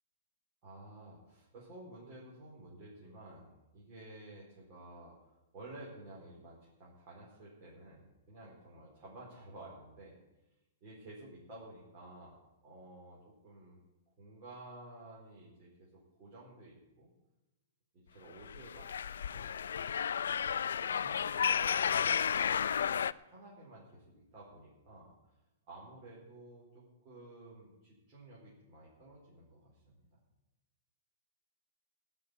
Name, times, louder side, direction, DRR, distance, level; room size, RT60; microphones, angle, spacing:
voice 1, 0.6-10.2 10.8-13.8 14.2-17.1 17.9-18.9 19.3-19.8 20.1-20.4 20.7-25.1 25.7-30.1, right 2 dB, 30° right, -6 dB, 4.5 m, -53 dB
sound 1, 18.4-23.1, left 8 dB, 85° left, 0.4 m, -32 dB
17.0 x 6.0 x 9.8 m, 0.99 s
hypercardioid pair, 170°, 0 cm